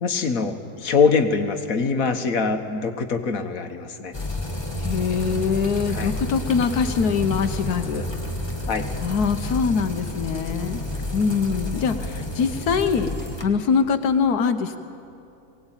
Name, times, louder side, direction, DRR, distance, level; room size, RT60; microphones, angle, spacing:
voice 1, 0.0-4.1 5.9-6.1 8.7-8.9, left 5 dB, 65° left, 7 dB, 1.8 m, -23 dB
sound 1, 4.1-13.4, left 1 dB, 15° left, 1.9 m, -30 dB
voice 2, 4.8-8.0 9.0-10.8 11.1-13.1 13.4-14.8, left 5 dB, 85° left, 8 dB, 1.5 m, -23 dB
23.0 x 18.5 x 9.0 m, 2.7 s
omnidirectional pair, 1.6 m